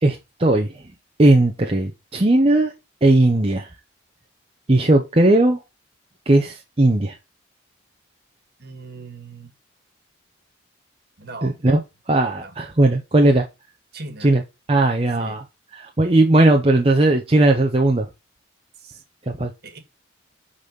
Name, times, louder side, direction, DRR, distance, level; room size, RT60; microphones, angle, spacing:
voice 1, 0.0-0.8 1.2-2.7 3.0-3.7 4.7-5.6 6.3-7.2 11.4-11.8 12.1-13.4 14.2-14.4 14.7-15.4 15.7-18.1 19.3-19.5, right 2 dB, 30° right, 0.8 m, -17 dB
voice 2, 8.6-9.5 11.2-11.5 12.4-12.5 13.9-14.3 15.2-15.4 18.8-19.0 19.6-19.8, right 3 dB, 55° right, 1.7 m, -39 dB
8.1 x 4.2 x 5.2 m
head